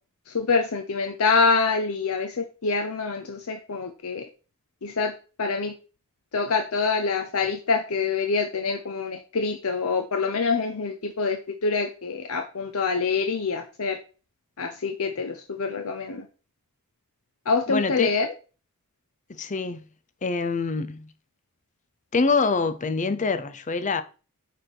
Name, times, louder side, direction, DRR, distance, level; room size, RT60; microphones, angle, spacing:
voice 1, 0.3-4.2 4.8-5.1 5.4-5.7 6.3-14.0 14.6-16.2 17.5-18.3, left 4 dB, 70° left, 0.7 m, -26 dB
voice 2, 17.7-18.1 19.3-19.8 20.2-21.1 22.1-24.0, left 4 dB, 35° left, 0.7 m, -25 dB
6.6 x 3.5 x 6.0 m
head